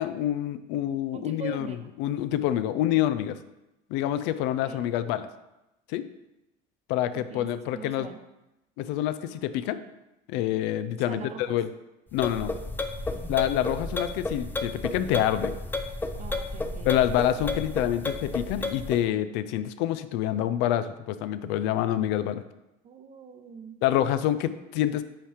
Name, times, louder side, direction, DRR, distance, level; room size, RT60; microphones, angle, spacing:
voice 1, 0.0-1.7 2.0-3.4 3.9-5.3 5.9-6.0 6.9-8.1 8.8-9.8 10.3-11.7 12.1-12.5 13.3-15.5 16.9-22.4 23.8-25.0, left 12 dB, 75° left, 13 dB, 0.5 m, -27 dB
voice 2, 1.1-1.9 4.6-4.9 7.1-8.2 11.0-11.6 16.2-16.9 22.8-23.8, right 6 dB, 40° right, 7 dB, 0.8 m, -42 dB
sound 1, 12.1-19.0, left 2 dB, 10° left, 0.5 m, -32 dB
8.7 x 2.9 x 4.9 m, 0.95 s
supercardioid pair, 100°, 18 cm